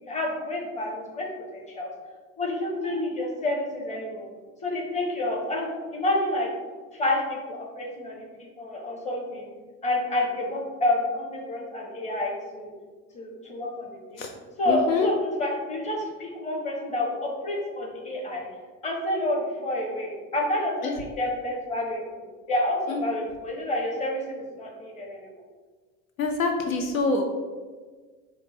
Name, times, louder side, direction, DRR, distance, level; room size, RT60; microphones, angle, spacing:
voice 1, 0.0-1.9 2.4-4.3 4.6-6.5 6.9-9.5 9.8-12.7 13.1-14.2 14.6-18.4 18.8-25.3, left 1 dB, 15° left, -1 dB, 0.9 m, -29 dB
voice 2, 14.7-15.1 20.8-21.0 22.9-23.0 26.2-27.2, left 4 dB, 75° left, 4 dB, 0.5 m, -25 dB
4.7 x 2.2 x 4.2 m, 1.5 s
figure-of-eight pair, 70°, 42 cm